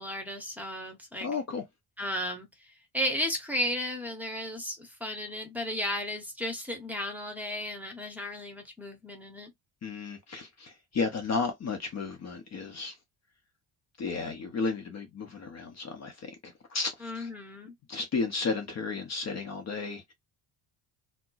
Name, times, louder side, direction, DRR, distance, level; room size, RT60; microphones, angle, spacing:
voice 1, 0.0-1.3 2.0-9.5 17.0-17.7, left 1 dB, 5° right, 0.8 m, -34 dB
voice 2, 1.2-1.6 9.8-13.0 14.0-17.3 17.9-20.1, left 4 dB, 35° left, 0.7 m, -33 dB
4.2 x 2.0 x 2.3 m
cardioid pair, 140°, 46 cm